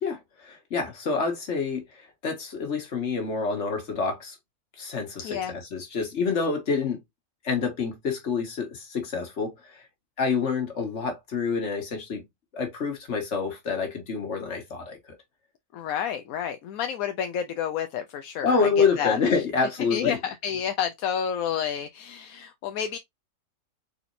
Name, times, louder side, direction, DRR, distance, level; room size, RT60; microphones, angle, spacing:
voice 1, 0.0-4.4 4.8-7.0 7.4-9.8 10.2-12.2 12.5-15.2 18.4-20.2, left 5 dB, 55° left, 1.8 m, -27 dB
voice 2, 15.7-19.2 19.9-23.0, left 8 dB, 80° left, 1.1 m, -30 dB
4.3 x 4.1 x 2.6 m
omnidirectional pair, 1.5 m